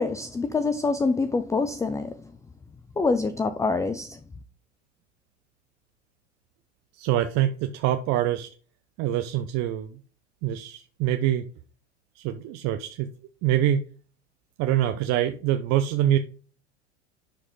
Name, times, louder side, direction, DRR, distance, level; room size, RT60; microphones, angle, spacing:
voice 1, 0.0-2.3 3.0-4.2, left 3 dB, 10° left, 0.5 m, -26 dB
voice 2, 6.9-8.5 9.0-10.0 10.4-11.4 12.2-13.1 13.4-13.8 14.6-16.2, right 12 dB, 45° right, 0.8 m, -25 dB
11.5 x 4.9 x 3.9 m
figure-of-eight pair, 80°, 37 cm